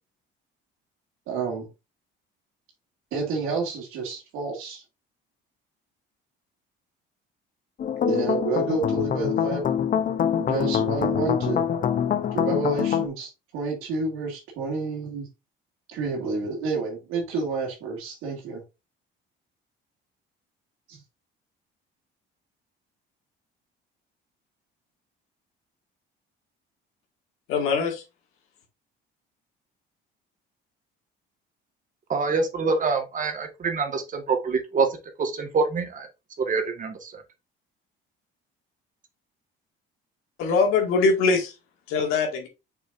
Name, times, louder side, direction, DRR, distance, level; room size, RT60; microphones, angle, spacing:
voice 1, 1.3-1.7 3.1-4.8 8.1-9.8 10.4-11.6 12.3-15.3 15.9-18.6 20.9-21.0, right 3 dB, 85° right, 2.3 m, -29 dB
sound 1, 7.8-13.1, left 8 dB, 40° left, 0.8 m, -25 dB
voice 2, 27.5-28.0 40.4-41.5 41.9-42.5, left 4 dB, 90° left, 2.1 m, -22 dB
voice 3, 32.1-34.9 35.2-36.1 36.5-37.2, right 4 dB, 40° right, 1.6 m, -25 dB
6.2 x 6.1 x 2.6 m
cardioid pair, 125°, 21 cm